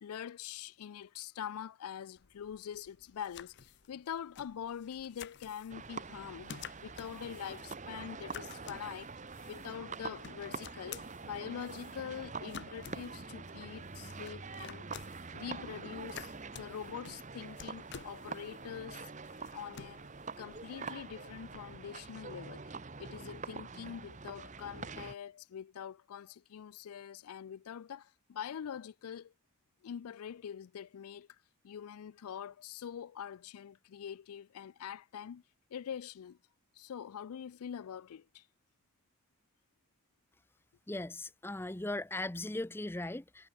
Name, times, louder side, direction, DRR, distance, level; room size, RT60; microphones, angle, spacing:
voice 1, 0.0-9.1 9.5-14.9 15.3-19.1 19.5-20.1 20.4-22.6 23.0-29.3 29.8-31.3 31.6-35.4 35.7-36.4 36.8-38.4, left 8 dB, 90° left, 0.4 m, -44 dB
sound 1, 2.2-21.8, left 7 dB, 50° left, 0.8 m, -53 dB
sound 2, 5.7-25.2, right 4 dB, 35° right, 1.0 m, -45 dB
voice 2, 40.9-43.5, left 2 dB, 10° left, 0.5 m, -38 dB
head